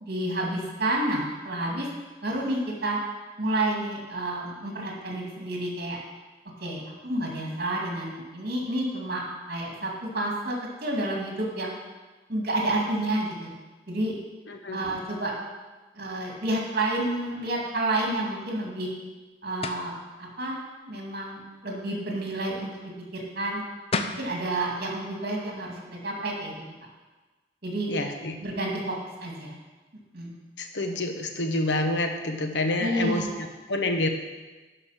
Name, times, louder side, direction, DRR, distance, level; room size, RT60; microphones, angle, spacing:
voice 1, 0.0-1.9 2.2-3.0 3.4-6.0 6.6-9.2 9.5-11.7 12.3-13.5 13.9-14.1 14.7-15.3 16.0-18.9 19.4-19.9 20.4-20.6 20.9-22.8 23.1-23.6 24.2-25.8 26.0-26.5 27.6-27.9 28.4-29.6 30.1-30.4 32.8-33.3, right 1 dB, 55° right, -1 dB, 2.4 m, -29 dB
voice 2, 14.5-14.8 27.9-28.4 30.6-34.1, left 2 dB, 80° left, 5 dB, 1.0 m, -28 dB
sound 1, 19.6-19.9 23.6-23.7 23.9-24.3, left 3 dB, 35° left, 0.5 m, -29 dB
11.0 x 5.2 x 5.8 m, 1.2 s
head